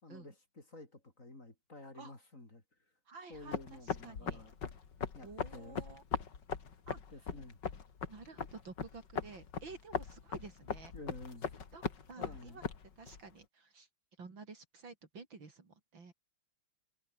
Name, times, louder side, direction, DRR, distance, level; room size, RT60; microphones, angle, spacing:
voice 1, 0.0-2.6 3.3-4.6 5.1-5.8 7.1-7.6 10.9-11.5 12.2-12.6, left 2 dB, 35° left, 5.3 m, -51 dB
voice 2, 3.1-4.4 5.2-6.0 6.9-7.0 8.1-10.9 11.7-12.6 13.0-13.9 14.2-16.1, right 4 dB, 60° right, 4.1 m, -51 dB
sound 1, 3.3-13.2, left 6 dB, 55° left, 2.7 m, -40 dB
omnidirectional pair, 2.3 m